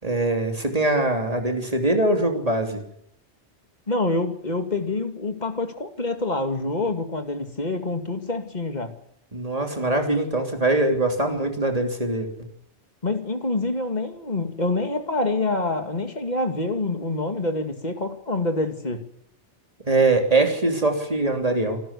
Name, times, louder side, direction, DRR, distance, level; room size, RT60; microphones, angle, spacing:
voice 1, 0.0-2.8 9.3-12.5 19.8-21.8, right 2 dB, 35° right, 4 dB, 3.3 m, -22 dB
voice 2, 3.9-8.9 13.0-19.0, left 2 dB, 40° left, 6 dB, 2.4 m, -26 dB
27.0 x 14.0 x 8.3 m, 0.70 s
omnidirectional pair, 1.2 m